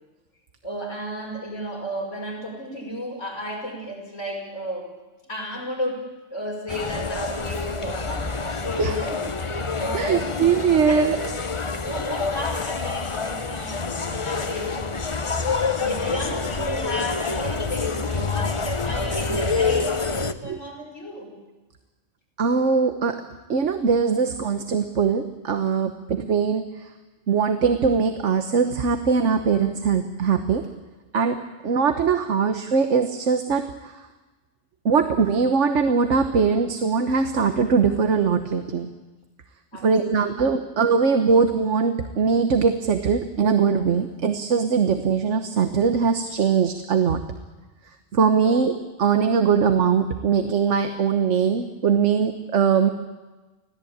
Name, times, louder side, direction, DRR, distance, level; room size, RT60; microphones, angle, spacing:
voice 1, 0.6-4.9 5.3-10.3 10.8-11.3 11.6-14.8 15.8-21.3 39.7-40.2 48.4-48.6, equal, 90° left, -2 dB, 6.2 m, -33 dB
sound 1, 6.7-20.3, left 4 dB, 30° left, 0.9 m, -27 dB
voice 2, 9.9-11.2 20.4-20.6 22.4-23.2 23.5-26.6 27.3-30.6 31.1-33.9 34.8-38.9 39.8-47.2 48.1-48.7 49.0-52.9, right 5 dB, 85° right, 8 dB, 1.5 m, -21 dB
25.5 x 17.0 x 8.8 m, 1.2 s
omnidirectional pair, 1.2 m